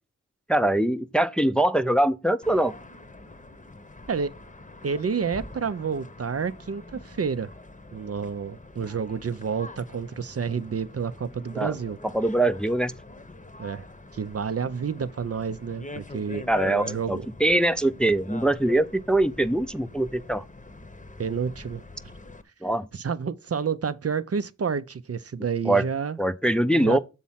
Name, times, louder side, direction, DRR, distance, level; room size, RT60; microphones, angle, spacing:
voice 1, 0.5-2.7 11.5-11.7 12.1-12.9 16.5-20.4 22.6-22.9 25.6-25.9 26.2-27.0, right 1 dB, 5° left, 0.5 m, -23 dB
sound 1, 2.4-22.4, left 2 dB, 25° left, 0.9 m, -44 dB
voice 2, 4.8-7.5 7.9-12.0 13.6-13.9 14.1-17.3 21.2-21.8 22.9-26.2 26.7-27.0, right 6 dB, 55° right, 0.5 m, -29 dB
7.3 x 4.2 x 5.6 m
wide cardioid pair, 55°, 30 cm